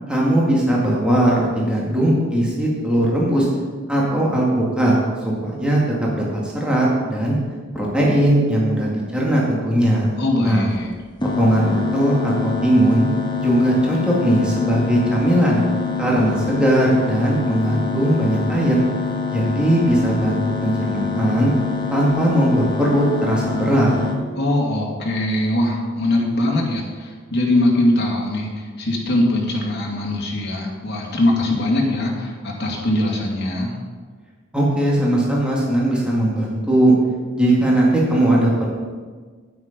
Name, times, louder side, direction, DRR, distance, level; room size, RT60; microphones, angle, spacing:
voice 1, 0.1-3.5 3.9-4.9 5.2-5.8 6.1-7.4 7.7-10.2 10.4-10.6 11.4-13.0 13.4-15.6 16.0-18.8 19.3-21.5 21.9-24.0 34.5-36.9 37.4-38.5, right 1 dB, 5° right, -5 dB, 2.0 m, -19 dB
voice 2, 10.2-10.9 24.3-33.8, left 1 dB, 55° left, -2 dB, 2.4 m, -21 dB
sound 1, 11.2-24.2, left 5 dB, 20° left, 1.3 m, -26 dB
9.6 x 9.6 x 5.2 m, 1.5 s
head